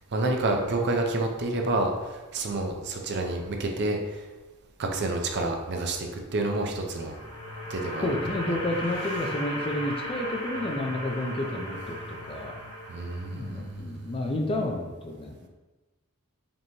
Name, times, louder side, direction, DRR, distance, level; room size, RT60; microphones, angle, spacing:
voice 1, 0.1-4.3 4.8-7.2 7.7-8.1 12.9-14.3, right 2 dB, 50° right, 3 dB, 0.5 m, -29 dB
sound 1, 6.6-13.7, equal, 75° left, 1.2 m, -37 dB
voice 2, 8.0-12.6 13.3-15.5, left 1 dB, 25° left, 2 dB, 0.4 m, -31 dB
5.2 x 3.0 x 2.8 m, 1.2 s
head